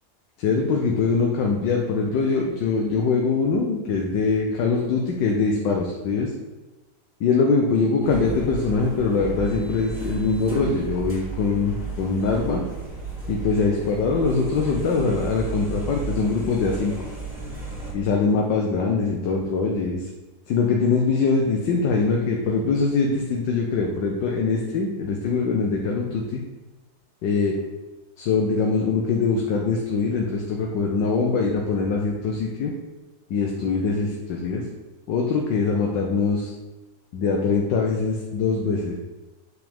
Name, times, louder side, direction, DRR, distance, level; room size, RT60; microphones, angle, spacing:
voice 1, 0.4-6.3 7.2-12.6 13.3-16.9 17.9-20.1 20.5-26.4 27.2-27.5 28.2-32.7 33.3-34.6 35.1-36.5 37.1-39.0, left 4 dB, 80° left, 0 dB, 1.5 m, -23 dB
sound 1, 8.0-17.9, right 3 dB, 5° right, 2.7 m, -34 dB
7.7 x 6.0 x 3.5 m, 1.1 s
omnidirectional pair, 2.0 m